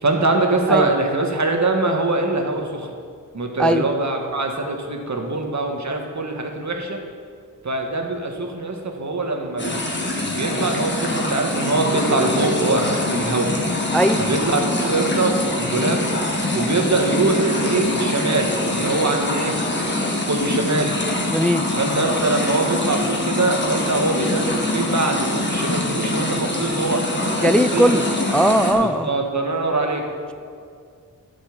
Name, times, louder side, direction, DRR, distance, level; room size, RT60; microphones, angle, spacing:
voice 1, 0.0-2.9 3.3-7.0 7.6-9.8 10.2-13.5 14.2-16.1 16.5-19.6 20.3-20.9 21.8-27.9 28.7-30.0, right 2 dB, 55° right, 3 dB, 1.5 m, -23 dB
sound 1, 9.6-28.7, left 2 dB, 35° left, 1.9 m, -24 dB
voice 2, 21.3-21.6 27.4-28.1 28.3-29.1, equal, 5° left, 9 dB, 0.4 m, -18 dB
11.5 x 5.6 x 7.1 m, 2.2 s
wide cardioid pair, 55°, 33 cm